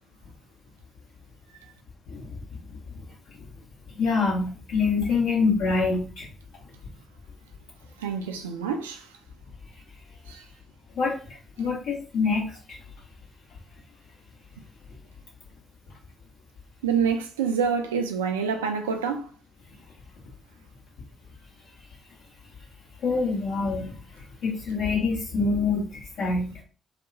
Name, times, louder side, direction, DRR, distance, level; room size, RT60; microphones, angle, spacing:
voice 1, 2.1-2.6 2.9-3.4 3.9-6.3 10.9-12.8 23.0-23.9 24.4-26.5, left 4 dB, 60° left, 1.2 m, -26 dB
voice 2, 8.0-9.1 10.3-10.4 16.8-19.3, right 6 dB, 80° right, 0.3 m, -27 dB
2.8 x 2.1 x 2.6 m
figure-of-eight pair, 40°, 0 cm